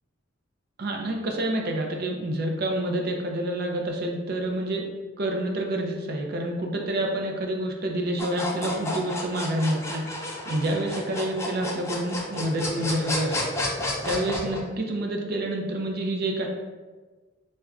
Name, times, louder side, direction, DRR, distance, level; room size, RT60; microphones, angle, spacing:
voice 1, 0.8-4.9 5.2-13.5 14.0-16.5, right 1 dB, 50° right, 1 dB, 0.4 m, -28 dB
sound 1, 8.2-14.6, left 2 dB, 15° left, 0.3 m, -31 dB
4.7 x 2.1 x 2.3 m, 1.3 s
head